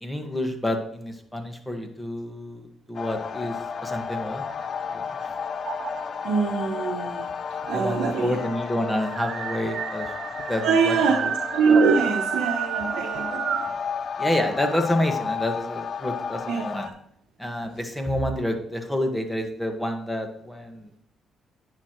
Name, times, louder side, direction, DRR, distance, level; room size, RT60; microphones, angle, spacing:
voice 1, 0.0-4.4 4.9-5.3 7.7-10.1 10.5-11.3 14.2-16.9 17.4-20.9, left 1 dB, 5° left, 4 dB, 1.8 m, -29 dB
sound 1, 2.9-16.9, left 6 dB, 50° left, 0.7 m, -33 dB
sound 2, 3.6-5.1 5.6-6.3 7.3-7.4 7.6-7.7 8.0-13.8, right 9 dB, 65° right, 0.4 m, -31 dB
voice 2, 6.2-7.3 7.7-8.4 10.6-11.2 11.5-13.6 16.5-16.9, right 5 dB, 85° right, 2 dB, 1.0 m, -23 dB
11.5 x 9.6 x 3.2 m, 0.71 s
cardioid pair, 90°, 0 cm